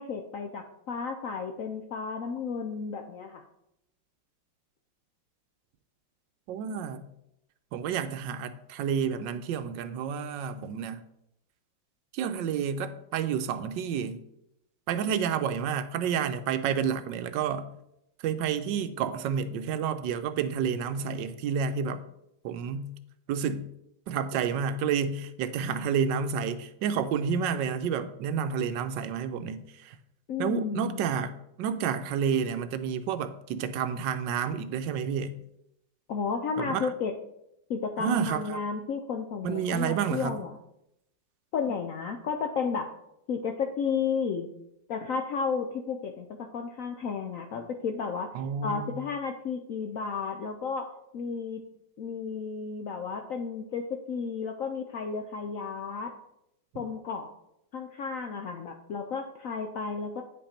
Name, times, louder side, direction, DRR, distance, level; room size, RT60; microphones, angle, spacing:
voice 1, 0.0-3.4 30.3-31.0 36.1-37.1 37.7-40.6 41.5-42.9 43.3-44.5 44.9-48.3 48.6-51.6 52.0-56.1 56.7-57.3 57.7-60.2, left 5 dB, 70° left, 4 dB, 0.8 m, -33 dB
voice 2, 6.5-7.1 7.7-11.0 12.1-14.2 14.9-17.7 18.2-22.0 22.4-22.9 23.3-23.7 24.1-30.0 30.4-35.3 36.6-36.9 38.0-38.6 39.4-40.5 48.3-49.0 56.7-56.8, right 7 dB, 75° right, 11 dB, 1.2 m, -30 dB
9.1 x 5.3 x 4.3 m, 0.81 s
omnidirectional pair, 2.1 m